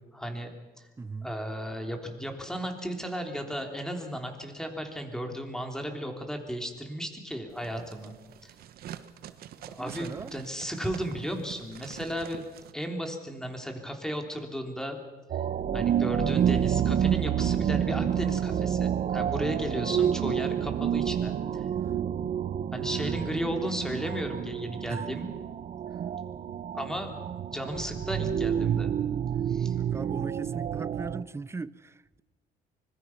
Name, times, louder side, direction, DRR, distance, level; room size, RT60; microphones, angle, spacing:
voice 1, 0.1-0.9 1.2-8.2 8.4-8.5 9.6-12.4 12.7-15.0 15.7-21.7 22.7-25.3 26.7-28.9 29.5-29.7, equal, 5° left, 3.4 m, -35 dB
voice 2, 1.0-1.3 9.8-10.3 22.9-23.3 24.9-25.1 29.8-32.2, right 3 dB, 15° right, 0.6 m, -39 dB
sound 1, 7.5-12.7, right 10 dB, 65° right, 1.3 m, -45 dB
sound 2, 15.3-31.2, right 9 dB, 50° right, 1.0 m, -29 dB
25.0 x 21.5 x 6.0 m
cardioid pair, 110°, 17 cm